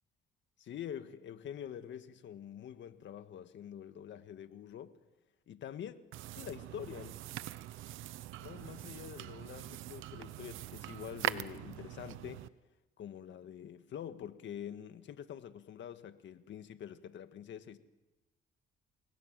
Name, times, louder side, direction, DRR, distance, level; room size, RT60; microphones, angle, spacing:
voice 1, 0.6-5.0 5.5-6.0 6.4-7.1 8.4-12.4 13.0-17.8, left 9 dB, 70° left, 10 dB, 1.8 m, -46 dB
sound 1, 6.1-12.5, right 14 dB, 90° right, 0.9 m, -42 dB
30.0 x 21.0 x 7.7 m, 1.1 s
cardioid pair, 90°, 20 cm